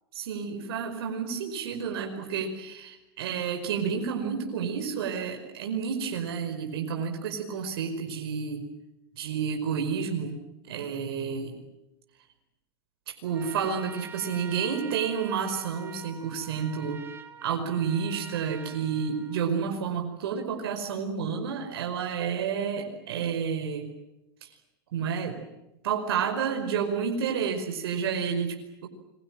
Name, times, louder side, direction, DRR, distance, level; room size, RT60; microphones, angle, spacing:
voice 1, 0.1-8.6 9.2-10.4 10.6-11.5 13.1-17.0 17.4-23.9 24.4-24.5 24.9-25.5 25.8-28.9, right 6 dB, 75° right, 4 dB, 5.2 m, -30 dB
Trumpet, 13.2-19.8, right 5 dB, 20° right, 3.7 m, -46 dB
29.0 x 23.0 x 7.6 m, 0.94 s
hypercardioid pair, 120°, 13 cm